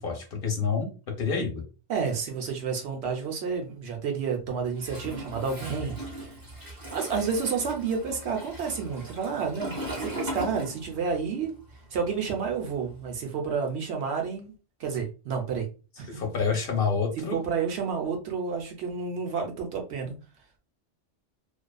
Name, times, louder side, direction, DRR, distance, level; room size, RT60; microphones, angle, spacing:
voice 1, 0.0-1.6 16.1-17.4, left 5 dB, 60° left, 2 dB, 0.7 m, -28 dB
voice 2, 1.9-6.2 6.9-11.5 11.9-14.5 14.8-15.7 16.0-16.1 17.3-20.1, right 5 dB, 70° right, 3 dB, 0.9 m, -30 dB
Toilet flush, 4.8-11.2 11.5-13.1, right 1 dB, 20° right, 0.7 m, -38 dB
2.5 x 2.2 x 2.3 m, 0.33 s
omnidirectional pair, 1.2 m